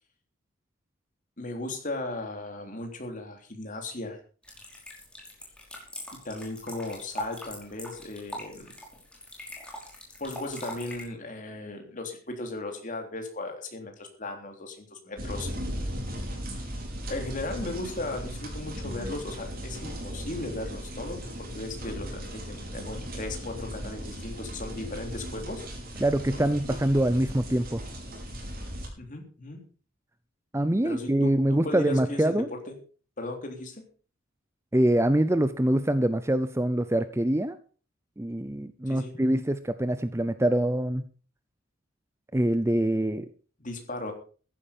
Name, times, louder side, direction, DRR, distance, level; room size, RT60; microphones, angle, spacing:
voice 1, 1.4-4.2 6.2-8.7 10.2-15.5 17.1-21.2 21.5-25.6 29.0-29.6 30.8-32.8 33.2-33.8 38.9-39.1 43.6-44.1, left 2 dB, 40° left, 4 dB, 3.4 m, -36 dB
sound 1, 4.4-11.0, left 1 dB, 5° left, 5.1 m, -41 dB
sound 2, 15.2-28.9, equal, 45° right, 5.5 m, -37 dB
voice 2, 26.0-27.8 30.5-32.5 34.7-37.6 38.2-41.0 42.3-43.3, right 1 dB, 15° right, 12 dB, 0.6 m, -24 dB
14.5 x 11.0 x 5.3 m, 0.40 s
head